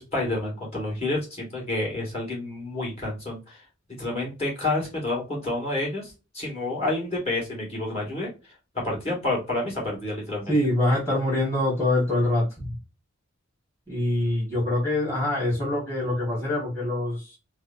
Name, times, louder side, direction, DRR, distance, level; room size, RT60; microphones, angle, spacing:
voice 1, 0.0-3.6 4.0-8.3 8.7-10.5, left 2 dB, 35° left, -3 dB, 2.1 m, -29 dB
voice 2, 10.5-12.7 13.9-17.4, left 1 dB, 15° left, -7 dB, 1.7 m, -24 dB
4.6 x 2.0 x 2.6 m, 0.28 s
head